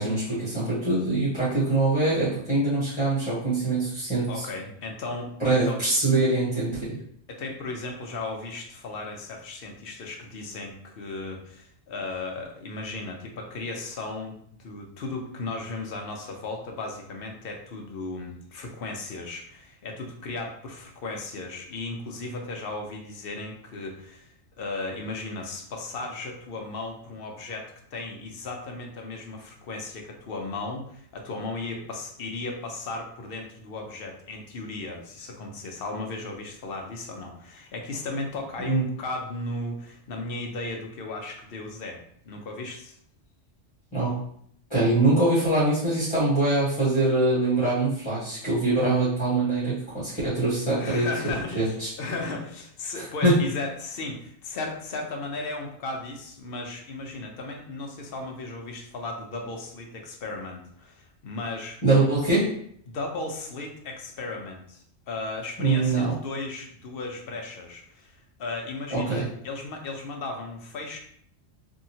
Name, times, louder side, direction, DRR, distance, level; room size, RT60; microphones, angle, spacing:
voice 1, 0.0-4.4 5.4-7.0 38.6-38.8 43.9-44.1 44.7-51.1 51.5-51.9 52.9-53.4 61.8-62.5 65.6-66.2 68.9-69.2, right 2 dB, 25° left, -12 dB, 1.2 m, -23 dB
voice 2, 4.3-5.8 7.3-43.0 50.8-61.8 62.9-71.0, left 2 dB, 60° left, 2 dB, 0.8 m, -36 dB
2.8 x 2.7 x 2.7 m, 0.66 s
omnidirectional pair, 1.2 m